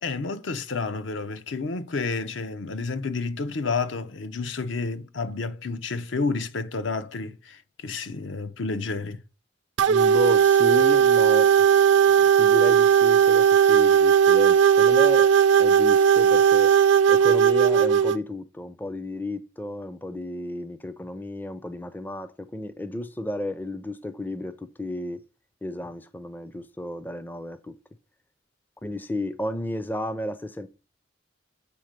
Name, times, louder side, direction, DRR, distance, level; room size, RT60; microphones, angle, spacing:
voice 1, 0.0-9.2, left 4 dB, 70° left, 0.6 m, -30 dB
sound 1, 9.8-18.2, right 8 dB, 65° right, 0.4 m, -17 dB
voice 2, 9.9-11.5 12.4-15.3 15.6-16.7 17.1-25.2 25.6-27.8 28.8-30.7, left 1 dB, 10° left, 0.4 m, -32 dB
7.6 x 3.7 x 6.5 m
head